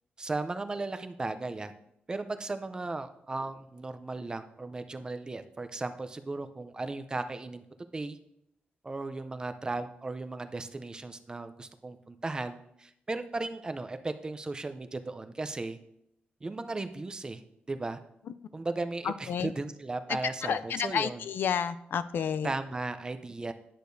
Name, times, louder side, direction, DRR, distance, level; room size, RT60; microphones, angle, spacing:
voice 1, 0.2-1.7 2.1-7.6 7.9-8.2 8.8-15.8 16.4-17.4 17.7-18.0 18.5-21.2 22.4-23.5, right 3 dB, 20° right, 10 dB, 0.5 m, -36 dB
voice 2, 19.0-19.5 20.1-22.5, left 7 dB, 70° left, 13 dB, 0.3 m, -31 dB
10.0 x 6.6 x 2.6 m, 0.77 s
wide cardioid pair, 130°, 4 cm